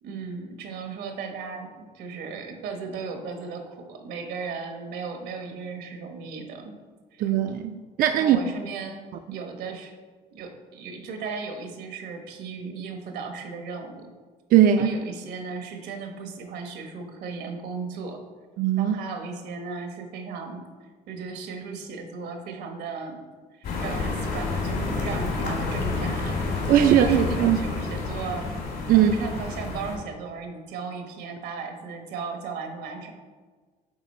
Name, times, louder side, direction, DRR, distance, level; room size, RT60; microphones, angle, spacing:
voice 1, 0.0-6.7 7.1-7.3 8.2-9.0 9.3-10.0 10.3-14.1 14.8-18.2 18.8-20.6 21.1-23.2 23.5-26.4 26.8-28.5 28.9-33.1, right 5 dB, 80° right, 4 dB, 1.1 m, -36 dB
voice 2, 7.2-8.4 14.5-15.0 18.6-18.9 26.7-27.6 28.9-29.1, right 10 dB, 55° right, 6 dB, 0.4 m, -19 dB
sound 1, 23.6-30.0, left 3 dB, 70° left, 2.1 m, -29 dB
8.1 x 3.8 x 4.2 m, 1.4 s
cardioid pair, 110°, 17 cm